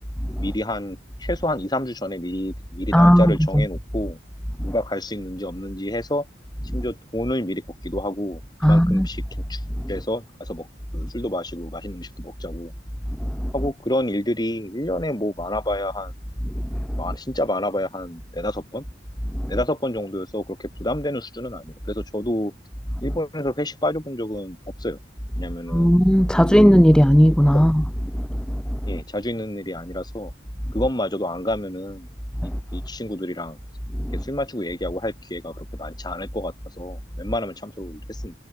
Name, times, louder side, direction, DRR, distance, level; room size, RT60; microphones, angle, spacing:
voice 1, 0.4-4.2 4.6-6.2 6.7-9.2 9.5-9.6 9.9-10.7 10.9-12.7 13.5-16.1 17.0-18.8 19.5-22.5 23.0-25.0 25.4-26.0 26.4-26.6 27.5-27.6 28.9-30.3 30.7-32.1 32.4-33.6 34.1-38.3, left 1 dB, 20° left, 6.1 m, -29 dB
voice 2, 2.9-3.2 3.5-3.6 8.6-9.1 25.7-27.8 28.5-28.8 32.4-32.5, equal, 5° left, 1.5 m, -15 dB
head